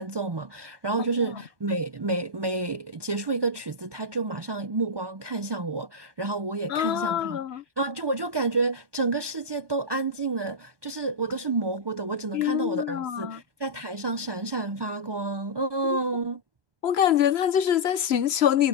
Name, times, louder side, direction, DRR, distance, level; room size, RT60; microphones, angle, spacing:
voice 1, 0.0-7.4 7.8-16.4, right 3 dB, 25° right, 0.7 m, -29 dB
voice 2, 6.7-7.6 12.3-13.4 16.8-18.7, left 10 dB, 75° left, 1.1 m, -24 dB
omnidirectional pair, 1.1 m